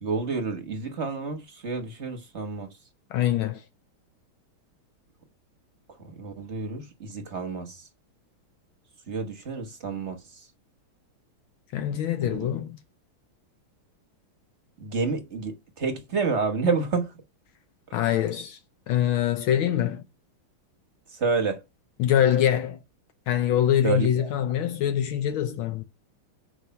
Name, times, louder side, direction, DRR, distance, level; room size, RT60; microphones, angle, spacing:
voice 1, 0.0-2.7 6.2-7.7 9.1-10.2 12.2-12.5 14.8-17.1 21.2-21.6 23.8-24.3, right 4 dB, 40° right, 1.1 m, -29 dB
voice 2, 3.1-3.6 11.7-12.8 17.9-18.6 18.9-20.0 22.0-22.8 23.3-25.8, left 10 dB, 75° left, 1.6 m, -24 dB
6.3 x 4.9 x 5.6 m
omnidirectional pair, 2.3 m